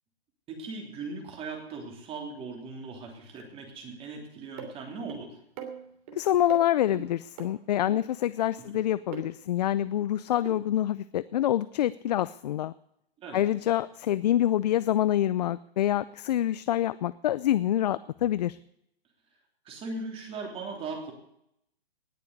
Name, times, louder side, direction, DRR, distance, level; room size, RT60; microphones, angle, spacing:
voice 1, 0.5-5.4 8.7-8.8 13.2-13.4 19.6-21.1, right 3 dB, 20° right, 2 dB, 3.2 m, -39 dB
sound 1, 4.6-4.7 5.1-5.2 5.6-6.1 6.5-6.6 6.9-7.0 7.4-7.5 7.9-8.0 9.1-9.3 10.4-10.5, right 8 dB, 35° right, 3.0 m, -39 dB
voice 2, 6.2-12.7 13.3-18.6, left 12 dB, 45° left, 17 dB, 0.4 m, -26 dB
19.0 x 6.9 x 8.2 m, 0.76 s
hypercardioid pair, 155°, 30 cm